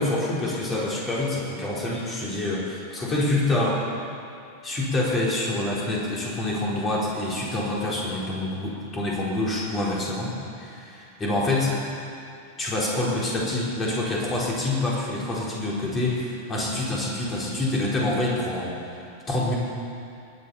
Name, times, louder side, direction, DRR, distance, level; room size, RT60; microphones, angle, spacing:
voice 1, 0.0-3.8 4.6-10.3 10.6-11.7 12.6-18.9 19.3-19.5, left 2 dB, 20° left, -5 dB, 4.3 m, -26 dB
20.0 x 10.0 x 5.7 m, 2.5 s
figure-of-eight pair, 90°, 0 cm